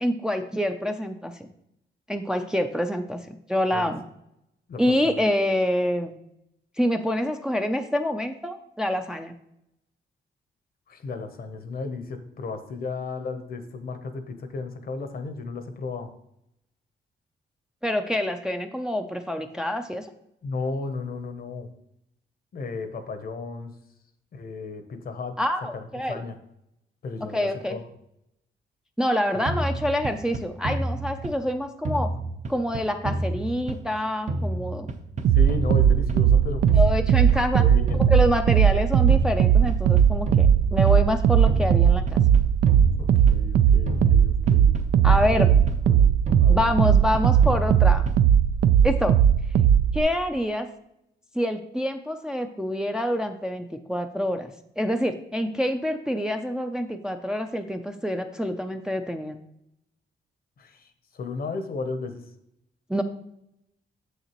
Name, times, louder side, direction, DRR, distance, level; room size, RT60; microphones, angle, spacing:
voice 1, 0.0-1.5 2.1-4.0 4.8-6.2 6.8-9.3 17.8-20.1 25.4-26.2 27.3-27.8 29.0-32.1 32.5-34.9 36.7-37.6 37.9-42.2 45.0-45.5 46.5-48.1 48.8-49.2 49.9-50.7 51.3-59.4 62.9-63.0, left 1 dB, 5° right, 5 dB, 0.4 m, -26 dB
voice 2, 4.7-5.3 10.9-16.1 20.4-21.7 22.5-23.7 24.3-25.4 25.7-26.4 27.0-27.8 29.3-29.4 35.3-36.8 37.6-38.1 43.0-44.7 45.3-45.5 45.9-46.1 46.3-46.7 60.6-60.9 61.1-62.2, left 3 dB, 55° left, 8 dB, 0.8 m, -34 dB
sound 1, 29.5-31.5 31.8-34.0 34.3-36.4 36.7-38.8 39.1-41.1 41.5-43.6 43.9-46.0 46.3-48.4, right 2 dB, 40° right, 0.7 m, -30 dB
sound 2, 35.2-50.0, right 9 dB, 75° right, 0.4 m, -19 dB
7.1 x 6.5 x 3.0 m, 0.78 s
cardioid pair, 125°, 18 cm